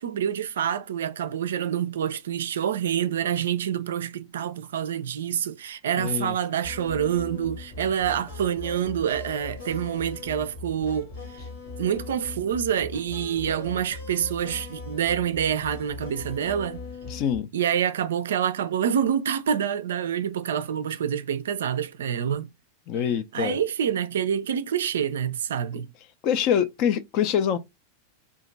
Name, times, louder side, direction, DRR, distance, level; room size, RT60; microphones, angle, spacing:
voice 1, 0.0-11.4 11.8-16.8 17.5-22.5 23.3-25.9, right 9 dB, 60° right, 0.3 m, -27 dB
voice 2, 6.0-6.3 17.1-17.5 22.9-23.6 26.2-27.6, left 8 dB, 40° left, 0.5 m, -25 dB
sound 1, 6.6-17.4, left 3 dB, 55° left, 1.1 m, -39 dB
2.9 x 2.4 x 3.8 m
figure-of-eight pair, 90°, 0 cm